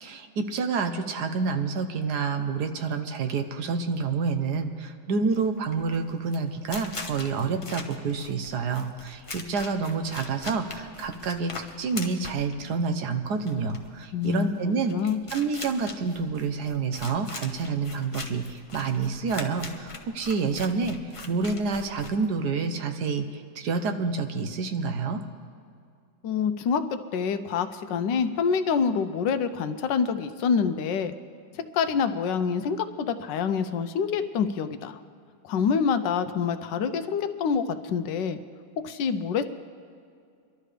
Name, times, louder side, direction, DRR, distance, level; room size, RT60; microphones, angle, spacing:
voice 1, 0.0-11.5 11.8-15.0 15.3-21.0 21.3-25.2, right 4 dB, 65° right, 7 dB, 1.3 m, -28 dB
sound 1, 5.2-22.6, left 3 dB, 30° left, 0.6 m, -41 dB
voice 2, 14.1-15.2 26.2-31.1 31.5-35.0 35.4-38.4 38.8-39.4, left 6 dB, 80° left, 10 dB, 1.3 m, -26 dB
24.0 x 12.0 x 3.3 m, 2.3 s
omnidirectional pair, 1.9 m